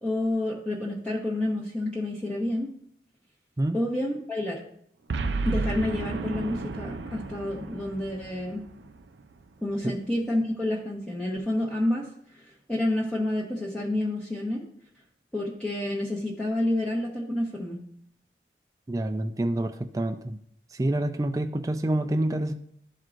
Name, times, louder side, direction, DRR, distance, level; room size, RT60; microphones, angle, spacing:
voice 1, 0.0-2.7 3.7-4.6 5.4-8.6 9.6-14.6 15.3-17.8, left 1 dB, 5° left, -6 dB, 0.9 m, -29 dB
Boom, 5.1-9.5, right 3 dB, 75° right, 0.5 m, -33 dB
voice 2, 18.9-20.4 20.8-22.5, right 1 dB, 20° right, 6 dB, 0.4 m, -27 dB
12.0 x 4.6 x 2.5 m, 0.67 s
head